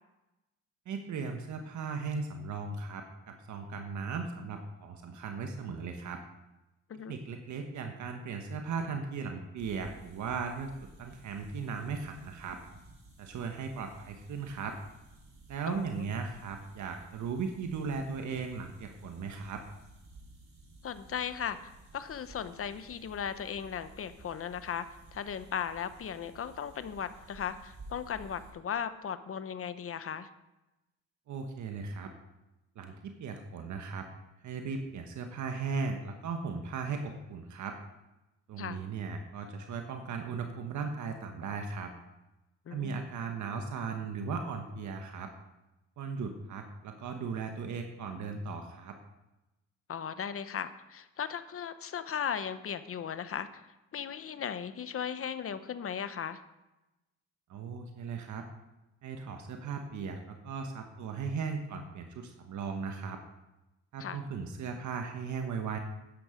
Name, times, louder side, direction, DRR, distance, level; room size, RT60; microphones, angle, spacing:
voice 1, 0.8-6.2 7.1-12.6 13.2-14.7 15.5-19.6 31.3-32.1 32.7-34.1 34.4-37.7 38.5-41.9 42.7-45.3 46.0-49.0 57.5-58.4 59.0-63.2 63.9-65.8, right 5 dB, 70° right, 4 dB, 1.3 m, -37 dB
sound 1, 9.6-28.5, right 2 dB, 45° right, 4.0 m, -55 dB
voice 2, 15.7-16.1 20.8-24.9 25.1-30.3 38.6-38.8 42.7-43.0 49.9-53.6 53.9-56.4 64.0-64.2, left 8 dB, 50° left, 12 dB, 0.9 m, -37 dB
12.0 x 9.5 x 5.1 m, 0.99 s
cardioid pair, 90°, 30 cm